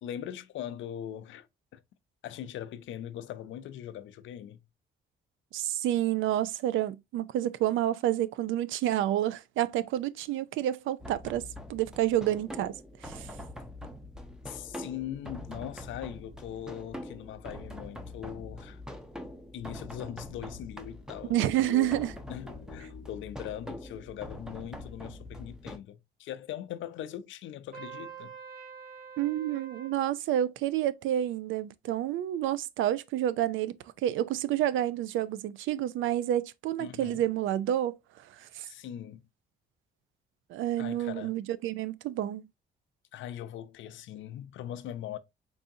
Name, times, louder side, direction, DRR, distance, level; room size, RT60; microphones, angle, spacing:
voice 1, 0.0-1.5 1.7-1.8 2.2-4.6 14.5-18.8 19.5-28.3 36.8-37.2 38.6-39.3 40.8-41.4 43.1-45.2, left 11 dB, 75° left, 0.5 m, -41 dB
voice 2, 5.5-12.7 13.0-13.3 21.3-22.1 29.2-33.8 34.0-38.0 38.4-38.7 40.5-42.4, right 12 dB, 80° right, 0.4 m, -29 dB
sound 1, 11.0-25.8, left 1 dB, 5° right, 0.7 m, -44 dB
Trumpet, 27.7-30.0, right 7 dB, 50° right, 2.1 m, -45 dB
4.6 x 2.7 x 2.6 m
cardioid pair, 90°, 20 cm